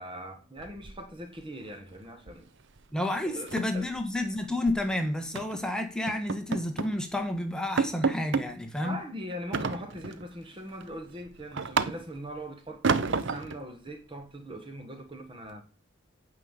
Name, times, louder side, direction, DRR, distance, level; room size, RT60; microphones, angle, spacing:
voice 1, 0.0-2.5 3.2-3.9 8.8-15.6, equal, 25° right, 1.4 m, -41 dB
sound 1, 0.6-1.4 1.7-1.9 2.3-2.5 2.8-2.9 3.3-4.8 5.3-5.6 6.1-7.0 7.3-7.4 7.8-8.5 9.5-10.3 10.7-12.3 12.8-13.6, right 4 dB, 60° right, 0.8 m, -31 dB
voice 2, 2.9-9.0, left 1 dB, 5° left, 1.4 m, -30 dB
9.3 x 5.6 x 8.1 m
head